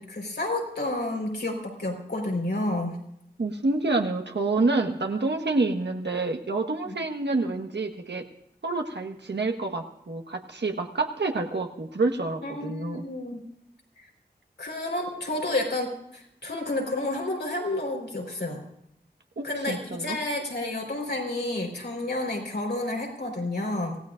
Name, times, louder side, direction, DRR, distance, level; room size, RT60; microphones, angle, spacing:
voice 1, 0.0-3.0 6.9-7.0 12.4-13.4 14.6-18.6 19.4-24.0, left 2 dB, 85° left, 0 dB, 4.5 m, -30 dB
voice 2, 3.4-8.2 8.6-13.0 19.4-20.2, right 3 dB, 85° right, 3 dB, 1.5 m, -28 dB
26.0 x 16.5 x 2.6 m, 0.77 s
wide cardioid pair, 55°, 18 cm